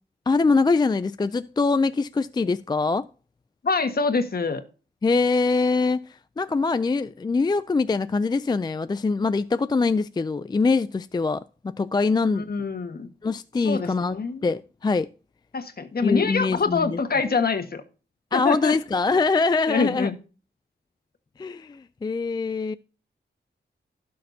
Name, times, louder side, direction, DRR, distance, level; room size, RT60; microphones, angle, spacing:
voice 1, 0.3-3.1 5.0-12.5 13.2-15.1 16.0-17.0 18.3-20.1 21.4-22.8, left 4 dB, 20° left, 0.3 m, -23 dB
voice 2, 3.6-4.6 12.3-13.1 13.6-14.5 15.5-17.8 18.3-18.7 19.7-20.1, left 4 dB, 55° left, 1.5 m, -25 dB
16.5 x 6.5 x 2.7 m
wide cardioid pair, 100°, 19 cm